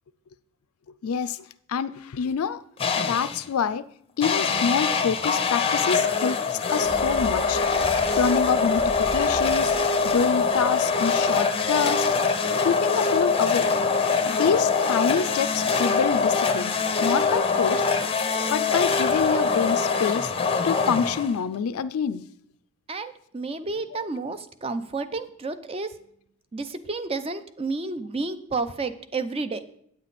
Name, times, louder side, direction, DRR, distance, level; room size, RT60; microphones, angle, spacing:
voice 1, 1.0-2.6 3.0-3.8 4.2-7.6 8.2-9.7 10.0-12.1 12.6-13.7 14.3-16.7 17.0-17.8 18.5-20.3 20.6-22.2 23.9-24.0, left 6 dB, 75° left, 12 dB, 0.4 m, -26 dB
sound 1, 2.8-3.5 4.2-21.6, left 5 dB, 25° left, 0.6 m, -23 dB
sound 2, 6.8-11.4 11.7-11.8, equal, 10° right, 0.8 m, -40 dB
voice 2, 22.9-25.9 26.5-29.6, right 3 dB, 25° right, 11 dB, 0.5 m, -31 dB
8.8 x 7.7 x 4.1 m, 0.68 s
head